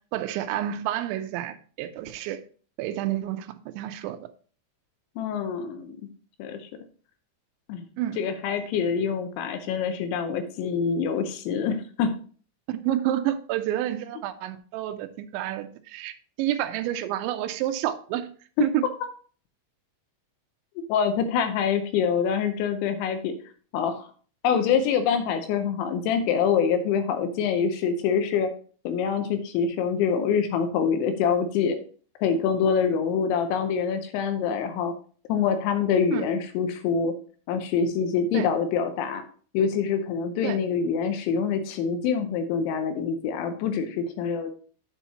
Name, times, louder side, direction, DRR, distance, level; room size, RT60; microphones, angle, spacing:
voice 1, 0.1-2.4 2.8-4.3 8.0-8.2 12.7-18.3 18.6-18.8 24.5-24.7 36.1-36.3 38.3-38.5 40.4-40.6, right 12 dB, 80° right, 2.8 m, -29 dB
voice 2, 5.2-6.0 6.4-6.7 7.7-7.9 8.2-12.1 18.6-18.7 20.9-23.3 23.7-24.1 24.4-28.5 28.8-31.8 32.2-34.9 35.3-37.1 37.5-39.2 39.5-44.5, left 6 dB, 80° left, 3.0 m, -25 dB
9.0 x 7.0 x 2.9 m
omnidirectional pair, 5.6 m